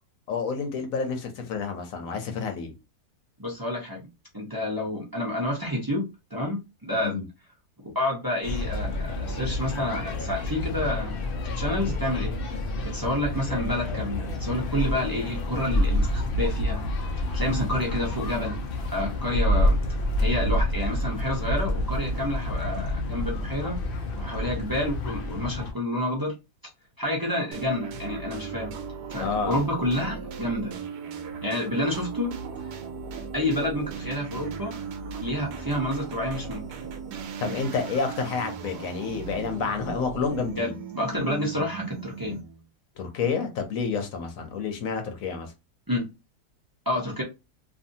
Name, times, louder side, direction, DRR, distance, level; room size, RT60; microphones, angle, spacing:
voice 1, 0.3-2.7 7.0-7.2 29.2-29.6 37.4-40.8 43.0-45.5, left 5 dB, 65° left, 1.0 m, -29 dB
voice 2, 3.4-4.0 4.3-7.2 7.9-11.2 11.6-12.4 12.8-16.8 17.3-19.8 20.2-23.8 24.2-26.3 27.0-28.7 29.1-30.7 31.4-32.4 33.3-34.8 35.2-36.6 37.4-37.6 40.6-40.7 40.9-42.4 45.9-46.1 46.9-47.2, left 1 dB, 25° right, 0.4 m, -29 dB
sound 1, 8.4-25.7, left 1 dB, 85° left, 0.4 m, -28 dB
sound 2, 27.5-42.6, right 5 dB, 80° right, 1.2 m, -37 dB
2.7 x 2.6 x 2.7 m
omnidirectional pair, 1.7 m